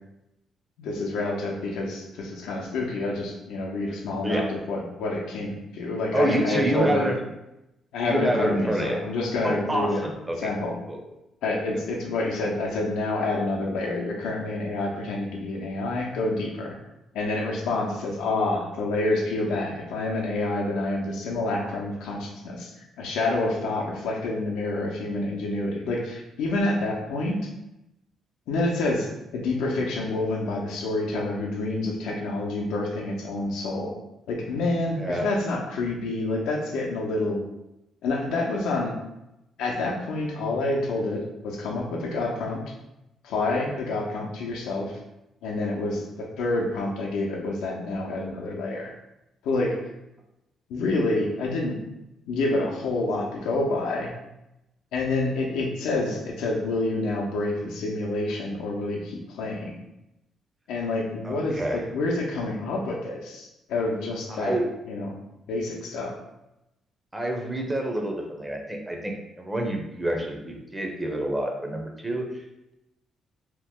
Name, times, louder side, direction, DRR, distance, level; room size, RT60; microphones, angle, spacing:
voice 1, 0.8-7.0 7.9-10.1 10.4-10.8 11.4-16.8 17.1-27.5 28.5-34.0 34.3-37.4 38.0-38.9 39.6-42.7 43.2-45.0 45.4-48.9 49.4-49.8 50.7-51.8 52.3-54.1 54.9-59.8 60.7-64.6 64.9-65.2 65.5-66.2, left 2 dB, 90° left, 0 dB, 0.6 m, -28 dB
voice 2, 6.1-7.2 8.1-9.0 9.4-11.0 35.0-35.3 59.6-59.7 61.2-61.8 64.3-64.7 67.1-72.3, right 1 dB, 15° right, 2 dB, 0.6 m, -27 dB
2.9 x 2.1 x 3.5 m, 0.90 s
cardioid pair, 90°, 0 cm